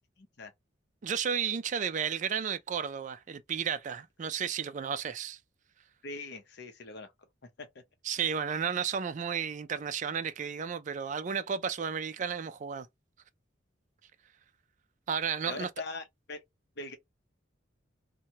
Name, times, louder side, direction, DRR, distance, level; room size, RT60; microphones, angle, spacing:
voice 1, 0.2-0.5 6.0-7.1 7.6-7.8 15.5-16.4 16.8-17.0, left 3 dB, 60° left, 0.7 m, -42 dB
voice 2, 1.0-5.4 8.0-12.9 15.1-15.7, right 7 dB, 40° right, 0.4 m, -33 dB
2.8 x 2.2 x 2.7 m
head